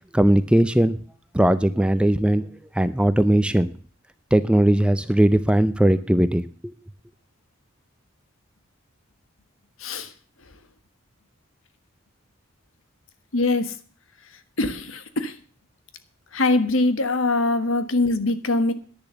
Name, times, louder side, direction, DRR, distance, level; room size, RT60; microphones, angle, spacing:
voice 1, 0.1-1.0 1.3-2.5 2.7-3.7 4.3-6.7, right 1 dB, 5° right, 12 dB, 0.5 m, -19 dB
voice 2, 9.8-10.1 13.3-13.7 14.6-15.4 16.3-18.7, left 2 dB, 70° left, 11 dB, 1.3 m, -22 dB
10.5 x 10.5 x 6.8 m, 0.43 s
head